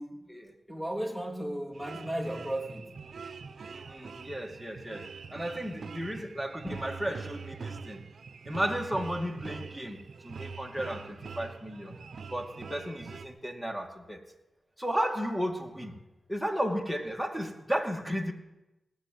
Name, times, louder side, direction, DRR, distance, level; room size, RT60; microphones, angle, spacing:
voice 1, 0.7-3.0, right 1 dB, 15° left, 0 dB, 3.4 m, -35 dB
sound 1, 1.7-13.3, right 5 dB, 70° right, 0.8 m, -44 dB
voice 2, 3.7-8.0 8.4-12.0 12.3-14.2 14.8-16.0 16.3-18.3, equal, ahead, 1 dB, 2.5 m, -34 dB
19.0 x 7.4 x 9.4 m, 0.98 s
cardioid pair, 45°, 0 cm